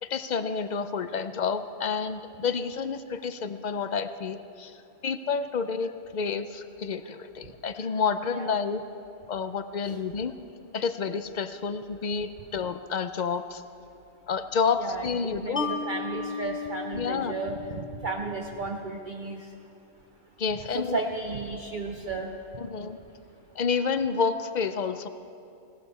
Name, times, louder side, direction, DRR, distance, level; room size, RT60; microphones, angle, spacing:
voice 1, 0.0-4.8 5.0-8.8 9.3-10.3 10.7-13.6 14.3-15.7 16.9-17.3 20.4-21.0 22.6-23.0 23.6-25.1, left 5 dB, 50° left, 11 dB, 0.5 m, -29 dB
voice 2, 14.8-17.6 18.0-19.4 20.7-22.3, right 3 dB, 45° right, 2 dB, 0.8 m, -33 dB
Mallet percussion, 15.6-18.8, left 6 dB, 10° left, 1.2 m, -36 dB
20.0 x 17.0 x 4.2 m, 2.6 s
omnidirectional pair, 1.3 m